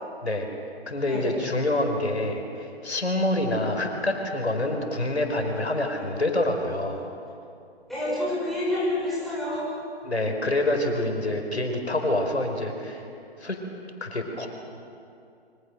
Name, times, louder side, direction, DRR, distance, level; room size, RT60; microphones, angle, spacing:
voice 1, 0.9-7.1 10.0-13.0 13.4-13.6 14.0-14.5, left 1 dB, 85° left, 4 dB, 4.8 m, -26 dB
voice 2, 7.9-9.7, left 1 dB, ahead, -8 dB, 6.8 m, -28 dB
27.5 x 25.0 x 6.5 m, 2.5 s
figure-of-eight pair, 135°, 32 cm